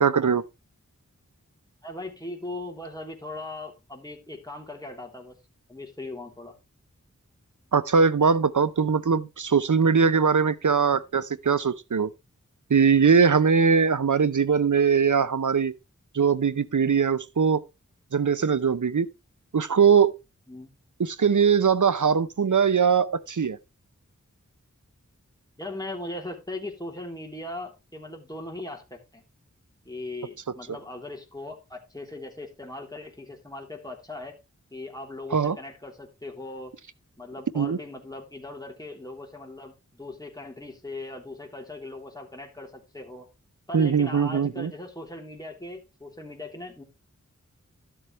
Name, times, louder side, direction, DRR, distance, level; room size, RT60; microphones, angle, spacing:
voice 1, 0.0-0.4 7.7-12.1 12.7-15.7 16.1-17.6 18.1-19.1 19.5-20.2 21.0-23.6 35.3-35.6 37.6-37.8 43.7-44.7, right 6 dB, 75° right, 0.8 m, -21 dB
voice 2, 1.8-5.4 5.7-6.5 20.5-20.7 25.6-29.2 29.9-34.4 34.7-36.7 37.2-43.3 43.7-46.8, left 2 dB, 10° left, 3.4 m, -39 dB
12.5 x 7.9 x 3.2 m
wide cardioid pair, 45°, 31 cm